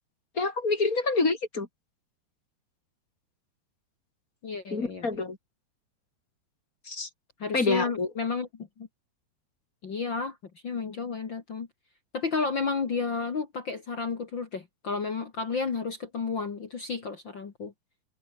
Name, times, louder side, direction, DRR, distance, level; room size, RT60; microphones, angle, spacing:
voice 1, 0.4-1.7 4.7-5.4 6.9-7.1 7.5-8.1, left 3 dB, 25° left, 2.4 m, -27 dB
voice 2, 4.4-5.1 7.4-8.5 8.8-8.9 9.8-10.4 10.6-11.7 12.1-17.7, left 4 dB, 55° left, 1.3 m, -32 dB
omnidirectional pair, 5.1 m